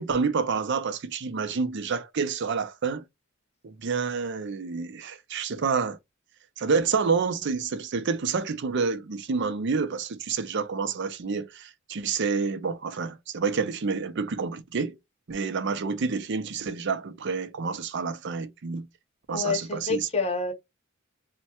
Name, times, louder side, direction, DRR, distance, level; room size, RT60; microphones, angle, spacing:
voice 1, 0.0-3.0 3.6-6.0 6.6-14.9 15.3-18.9 19.3-20.1, right 5 dB, 60° right, 0.5 m, -28 dB
voice 2, 19.3-20.5, left 4 dB, 30° left, 0.8 m, -28 dB
3.2 x 2.2 x 2.9 m
head